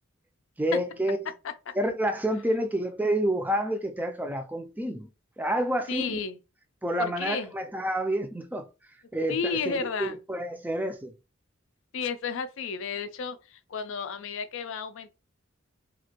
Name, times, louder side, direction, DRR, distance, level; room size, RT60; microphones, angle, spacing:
voice 1, 0.6-1.3 1.7-5.1 5.4-6.2 6.8-8.7 9.1-11.1, right 1 dB, 10° right, 0.4 m, -29 dB
voice 2, 5.9-6.4 7.0-7.5 9.3-10.2 11.9-15.1, left 5 dB, 65° left, 0.4 m, -32 dB
2.9 x 2.5 x 2.8 m
head